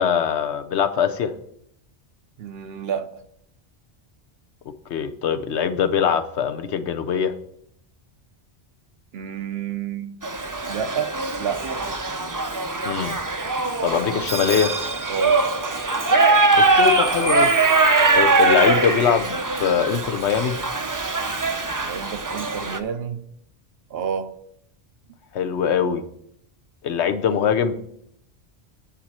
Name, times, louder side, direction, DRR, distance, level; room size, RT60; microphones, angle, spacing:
voice 1, 0.0-1.3 4.9-7.3 12.8-13.2 13.8-14.7 16.6-17.5 18.1-20.6 25.3-26.0 26.8-27.7, left 7 dB, 80° left, 1.1 m, -22 dB
voice 2, 2.4-3.1 9.1-10.2 10.7-11.1 11.4-11.6 13.2-13.3 15.1-15.4 21.8-23.2 23.9-24.3, right 8 dB, 65° right, 0.8 m, -29 dB
Shout / Livestock farm animals working animals, 10.2-22.8, right 3 dB, 25° right, 0.5 m, -21 dB
9.5 x 4.3 x 7.4 m
omnidirectional pair, 1.1 m